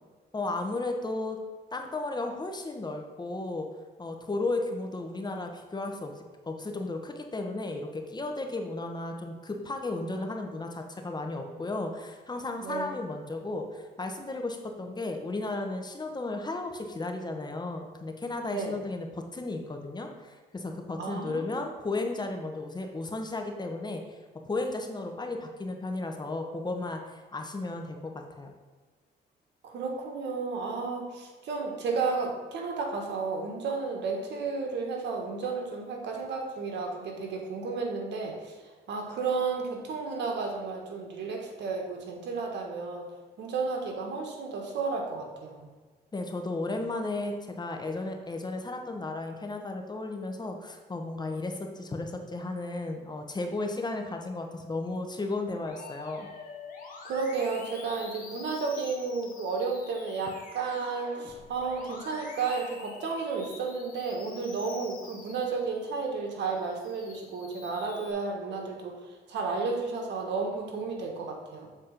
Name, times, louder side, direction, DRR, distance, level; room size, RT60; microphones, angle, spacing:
voice 1, 0.3-1.4 1.7-3.7 4.0-24.2 24.4-28.5 46.1-56.3, left 2 dB, 25° left, 4 dB, 1.0 m, -34 dB
voice 2, 21.0-21.4 29.6-38.6 38.9-43.1 43.4-45.7 57.0-71.7, right 4 dB, 80° right, 1 dB, 1.5 m, -32 dB
Musical instrument, 55.7-66.1 66.6-68.1, left 4 dB, 50° left, 1.6 m, -47 dB
7.3 x 4.2 x 5.2 m, 1.4 s
cardioid pair, 100°, 18 cm